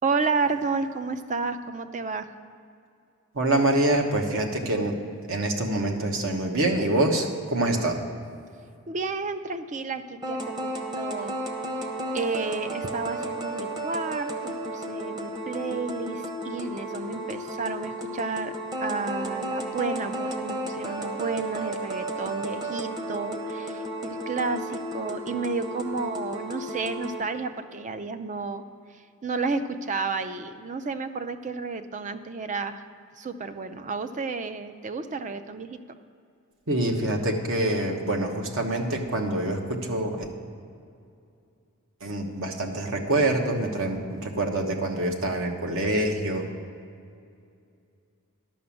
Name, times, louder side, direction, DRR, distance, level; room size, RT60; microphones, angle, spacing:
voice 1, 0.0-2.3 8.9-10.7 11.0-11.4 12.1-18.5 18.8-28.6 29.2-32.8 33.2-35.8, right 4 dB, 35° right, 10 dB, 0.5 m, -31 dB
voice 2, 3.3-5.0 5.3-8.0 36.7-40.2 42.0-46.4, right 1 dB, 65° right, 2 dB, 1.2 m, -25 dB
sound 1, 10.2-27.2, right 1 dB, 20° right, 0.9 m, -33 dB
11.0 x 6.1 x 7.1 m, 2.4 s
head